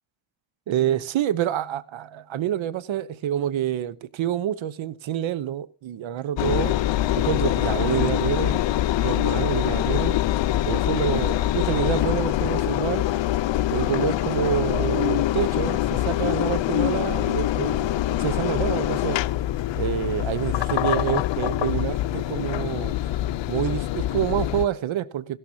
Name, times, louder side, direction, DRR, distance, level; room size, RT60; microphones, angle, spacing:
voice 1, 0.7-6.8 7.1-8.6 9.0-10.2 10.6-13.0 13.7-19.2 19.8-23.1 23.5-25.4, right 11 dB, 65° right, 1.1 m, -27 dB
Engine, 6.4-24.7, left 14 dB, 60° left, 0.7 m, -24 dB
17.5 x 13.5 x 2.8 m
supercardioid pair, 60°, 49 cm